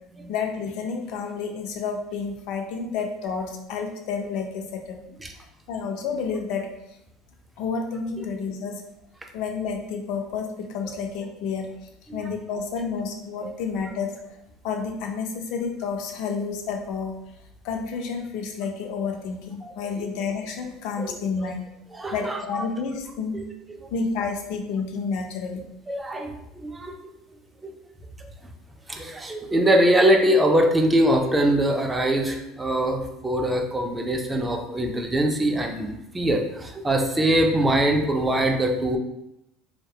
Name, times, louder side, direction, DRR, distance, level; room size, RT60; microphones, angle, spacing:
voice 1, 0.3-5.0 5.7-6.7 7.6-8.8 9.3-11.7 12.1-14.2 14.6-17.2 17.6-21.7 22.1-23.4 23.9-25.7, left 5 dB, 70° left, 3 dB, 0.4 m, -30 dB
voice 2, 19.6-20.1 21.0-21.5 21.9-22.7 23.3-23.4 23.8-23.9 25.9-27.0 27.6-27.7 28.9-39.0, right 1 dB, 15° right, 3 dB, 0.3 m, -23 dB
2.7 x 2.1 x 2.3 m, 0.83 s
supercardioid pair, 105°, 0 cm